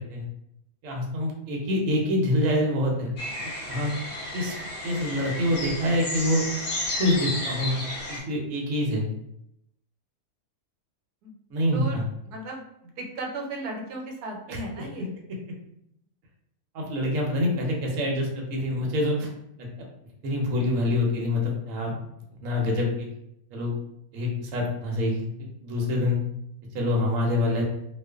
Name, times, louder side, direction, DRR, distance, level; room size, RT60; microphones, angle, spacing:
voice 1, 0.8-3.1 3.7-3.9 4.3-4.5 4.8-6.4 6.9-7.8 8.1-9.1 11.5-12.0 14.5-14.9 16.7-19.3 19.6-19.9 20.2-22.0 22.4-23.1 23.5-23.7 24.1-26.2 26.7-27.6, left 1 dB, 65° right, 0 dB, 0.9 m, -26 dB
sound 1, 3.2-8.2, left 1 dB, 60° left, 0.8 m, -33 dB
voice 2, 11.7-12.6 13.0-15.1, right 2 dB, 90° right, 1 dB, 1.1 m, -36 dB
2.4 x 2.4 x 2.3 m, 0.78 s
omnidirectional pair, 1.6 m